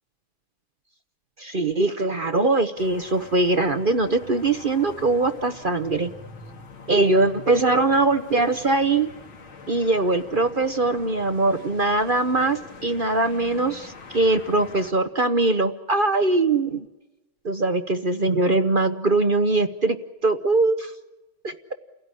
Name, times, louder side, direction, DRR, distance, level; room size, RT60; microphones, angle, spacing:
voice 1, 1.4-6.1 6.9-9.1 9.7-16.9 17.4-20.0 20.2-20.9 21.4-21.7, right 2 dB, 40° right, 9 dB, 0.8 m, -22 dB
sound 1, 2.8-14.9, left 4 dB, 80° left, 3.2 m, -44 dB
29.5 x 16.5 x 9.8 m, 1.0 s
omnidirectional pair, 2.2 m